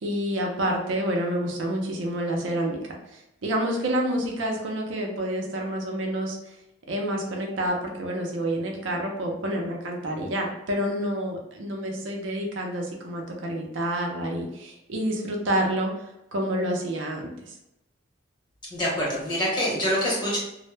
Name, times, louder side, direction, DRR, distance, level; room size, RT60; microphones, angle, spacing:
voice 1, 0.0-6.4 6.9-15.9 16.3-17.5, right 1 dB, 75° right, 0 dB, 0.5 m, -28 dB
voice 2, 18.7-20.4, equal, 25° left, -5 dB, 0.9 m, -25 dB
2.1 x 2.0 x 3.2 m, 0.88 s
head